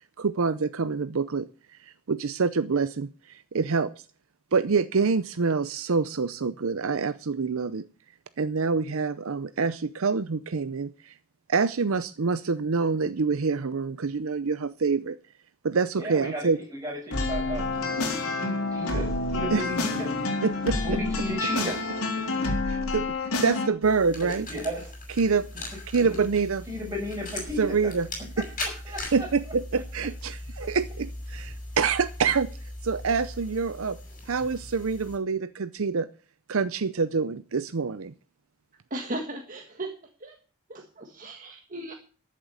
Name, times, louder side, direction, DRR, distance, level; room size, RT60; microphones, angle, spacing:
voice 1, 0.2-1.5 1.8-3.9 4.5-7.9 8.4-11.1 11.5-15.2 15.6-16.6 19.5-19.7 20.4-21.0 22.7-24.5 25.2-25.5 25.9-26.7 27.6-28.1 29.1-32.5 32.8-34.0 34.3-36.1 36.5-38.1, right 5 dB, 65° right, 0.6 m, -26 dB
voice 2, 16.0-20.1 20.8-21.8 24.2-24.9 26.7-27.9 28.4-29.3, equal, 15° right, 6.3 m, -34 dB
sound 1, 17.1-23.7, left 3 dB, 75° left, 3.3 m, -28 dB
sound 2, 23.8-35.2, left 2 dB, 35° left, 6.4 m, -39 dB
voice 3, 38.9-40.4 40.7-41.9, right 1 dB, 35° right, 1.6 m, -37 dB
13.0 x 7.5 x 8.2 m
head